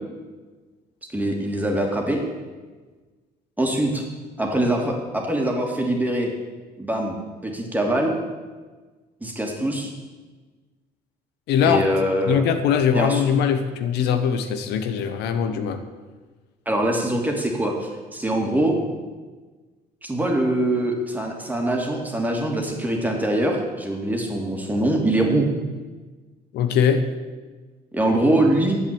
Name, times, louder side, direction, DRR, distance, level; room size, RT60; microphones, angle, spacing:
voice 1, 1.1-2.2 3.6-4.0 4.4-6.3 6.8-7.2 7.4-8.2 9.2-9.9 11.6-12.4 12.9-13.2 16.7-18.8 20.0-25.5 27.9-28.8, right 1 dB, 10° right, 1 dB, 2.7 m, -23 dB
voice 2, 11.5-11.8 12.3-15.8 26.5-27.0, left 7 dB, 80° left, 8 dB, 1.2 m, -21 dB
11.0 x 8.2 x 8.8 m, 1.3 s
cardioid pair, 110°, 17 cm